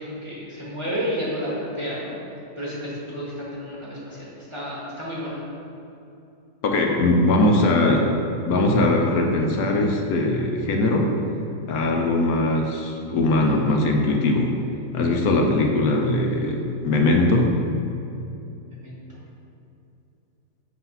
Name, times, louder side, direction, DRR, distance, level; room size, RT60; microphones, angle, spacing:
voice 1, 0.0-2.1 2.6-5.4 18.7-19.0, equal, 20° right, -7 dB, 1.5 m, -31 dB
voice 2, 6.6-8.1 8.5-11.1 11.7-14.5 14.9-17.6, left 2 dB, 75° left, 1 dB, 1.1 m, -20 dB
7.8 x 3.2 x 5.6 m, 2.7 s
omnidirectional pair, 1.6 m